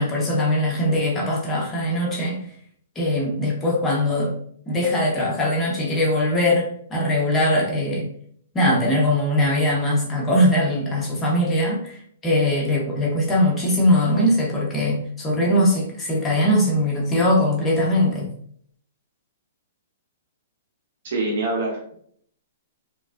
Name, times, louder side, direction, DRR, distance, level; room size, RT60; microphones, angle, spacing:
voice 1, 0.0-2.4 2.9-4.3 4.7-8.1 8.5-18.3, left 1 dB, 20° left, -3 dB, 1.0 m, -21 dB
voice 2, 21.0-21.9, right 2 dB, 60° right, -1 dB, 0.7 m, -25 dB
4.0 x 2.3 x 2.4 m, 0.63 s
hypercardioid pair, 130°, 0 cm